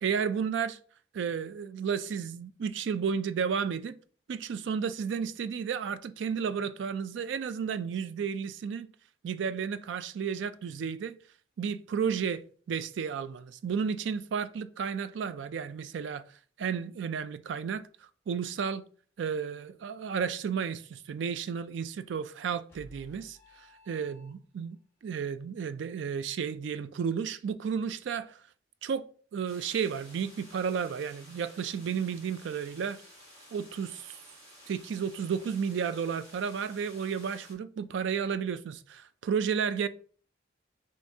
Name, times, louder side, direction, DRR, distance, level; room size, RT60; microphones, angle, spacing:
voice 1, 0.0-0.8 1.1-4.0 4.3-8.9 9.2-11.1 11.6-16.2 16.6-17.8 18.3-18.8 19.2-24.8 25.0-28.4 28.8-33.0 33.5-34.2 34.7-39.9, right 6 dB, 75° right, 0.3 m, -32 dB
sound 1, 22.7-24.8, left 1 dB, 15° left, 1.5 m, -55 dB
sound 2, 29.5-37.5, equal, 35° right, 1.8 m, -54 dB
6.4 x 2.6 x 2.7 m
head